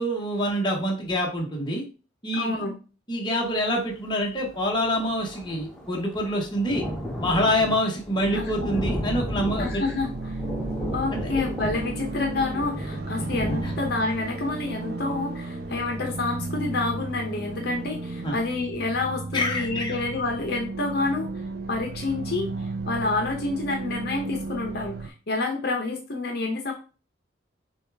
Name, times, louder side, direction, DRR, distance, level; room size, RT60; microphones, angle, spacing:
voice 1, 0.0-1.8 2.2-2.6 3.1-6.8 7.2-9.8 11.1-11.3 13.6-13.7 18.2-18.3 19.3-20.0, equal, 25° left, -1 dB, 1.1 m, -26 dB
voice 2, 2.3-2.7 8.3-8.8 9.6-10.3 10.9-21.3 21.7-26.7, left 3 dB, 55° left, 2 dB, 0.8 m, -28 dB
Thunder, 4.2-4.3 4.5-17.2 17.6-17.7 18.1-18.2, equal, 5° left, 0.7 m, -34 dB
sound 1, 8.2-25.1, right 3 dB, 50° right, 0.5 m, -34 dB
6.5 x 2.4 x 3.4 m, 0.35 s
head